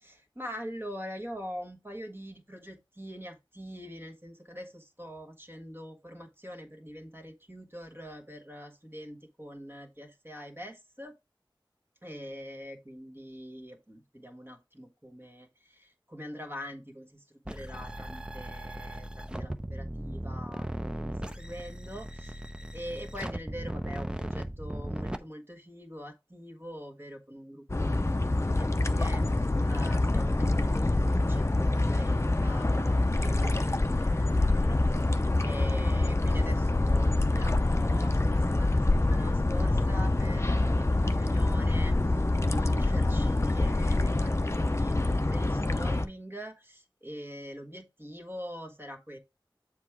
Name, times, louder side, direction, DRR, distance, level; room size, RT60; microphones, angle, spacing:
voice 1, 0.0-11.1 12.0-22.4 22.7-33.5 33.9-35.1 35.4-49.2, equal, 25° right, 1.6 m, -44 dB
sound 1, 17.4-25.2, right 1 dB, 10° right, 0.7 m, -37 dB
sound 2, 27.7-46.1, left 2 dB, 30° left, 0.6 m, -26 dB
7.3 x 3.6 x 4.6 m
wide cardioid pair, 40°, 9 cm